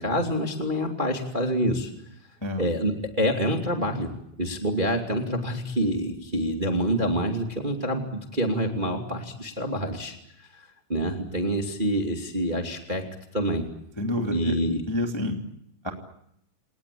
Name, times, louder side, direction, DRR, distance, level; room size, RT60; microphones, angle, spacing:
voice 1, 0.0-1.9 2.6-4.1 4.4-13.0 13.3-13.7 14.3-14.8, equal, 25° right, 3 dB, 1.0 m, -27 dB
voice 2, 14.0-14.6 14.9-15.4 15.8-15.9, left 1 dB, 25° left, 3 dB, 0.6 m, -28 dB
29.0 x 19.5 x 8.6 m, 0.75 s
omnidirectional pair, 5.9 m